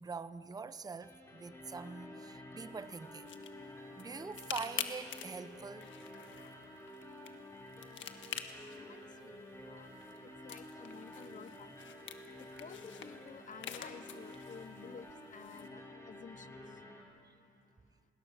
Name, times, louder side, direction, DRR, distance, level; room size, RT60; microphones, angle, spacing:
voice 1, 0.0-3.3 4.0-5.9, right 4 dB, 20° right, 14 dB, 0.7 m, -44 dB
sound 1, 1.0-17.0, left 1 dB, 15° left, 5.1 m, -51 dB
sound 2, 2.7-15.7, left 9 dB, 70° left, 1.6 m, -48 dB
voice 2, 8.7-9.9 10.2-11.7 12.4-16.8, left 6 dB, 40° left, 14 dB, 0.9 m, -53 dB
28.5 x 20.0 x 6.7 m, 2.6 s
cardioid pair, 90°, 20 cm